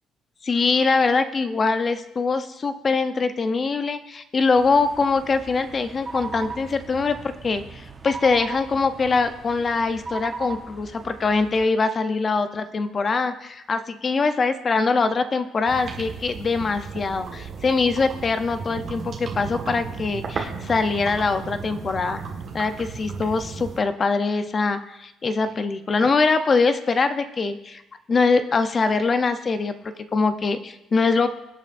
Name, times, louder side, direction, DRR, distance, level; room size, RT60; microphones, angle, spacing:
voice 1, 0.4-22.2 22.5-27.8 28.1-31.3, left 4 dB, 30° left, 9 dB, 0.6 m, -23 dB
sound 1, 4.6-11.6, right 4 dB, 25° right, 0.9 m, -38 dB
sound 2, 15.7-23.8, right 5 dB, 50° right, 1.6 m, -35 dB
24.5 x 8.5 x 2.6 m, 0.89 s
cardioid pair, 140°, 0 cm